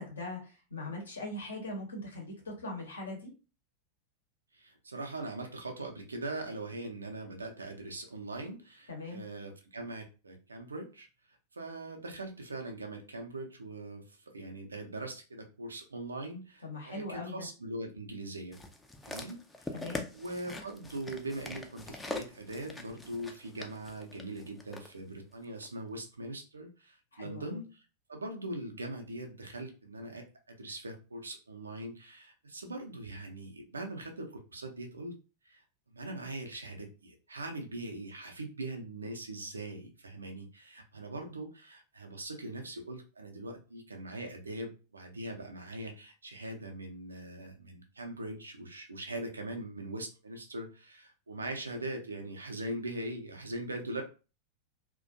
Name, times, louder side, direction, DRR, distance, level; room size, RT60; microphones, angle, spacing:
voice 1, 0.0-3.3 8.9-9.2 16.6-17.5 19.7-20.0 27.1-27.6, left 2 dB, 70° left, 0 dB, 0.9 m, -40 dB
voice 2, 4.5-18.6 19.1-19.7 20.1-27.8 28.1-35.2 35.4-54.0, right 2 dB, 75° right, 3 dB, 0.5 m, -41 dB
sound 1, 18.5-24.9 25.6-25.7, left 2 dB, 10° left, 0.4 m, -43 dB
2.4 x 2.2 x 2.6 m, 0.33 s
figure-of-eight pair, 90°, 0 cm